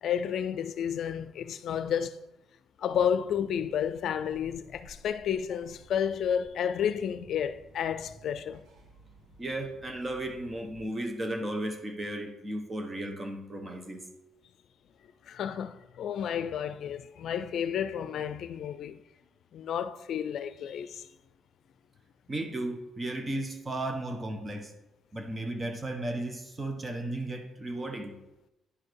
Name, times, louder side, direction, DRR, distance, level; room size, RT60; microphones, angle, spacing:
voice 1, 0.0-2.2 2.8-8.6 15.2-19.0 19.5-21.1, left 8 dB, 70° left, 0.5 m, -31 dB
sound 1, 2.9-10.8, equal, 80° right, 2.6 m, -56 dB
voice 2, 9.4-14.1 22.3-24.7 25.1-28.1, right 1 dB, 25° right, 1.3 m, -35 dB
10.0 x 4.9 x 4.7 m
cardioid pair, 90°, 0 cm